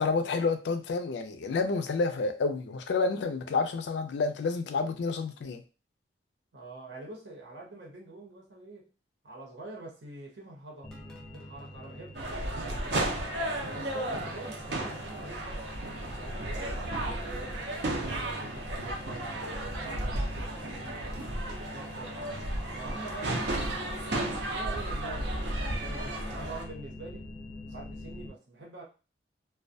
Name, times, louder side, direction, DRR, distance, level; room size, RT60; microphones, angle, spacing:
voice 1, 0.0-5.6, left 4 dB, 70° left, 0.3 m, -29 dB
voice 2, 6.5-8.9 9.2-10.9 11.3-13.4 13.7-15.7 16.1-21.1 21.5-22.1 22.7-27.4 27.7-28.8, right 2 dB, 85° right, 0.9 m, -46 dB
sound 1, 10.8-28.3, left 1 dB, 5° left, 0.4 m, -45 dB
sound 2, 12.1-26.6, right 1 dB, 65° right, 0.5 m, -34 dB
2.2 x 2.1 x 2.6 m
head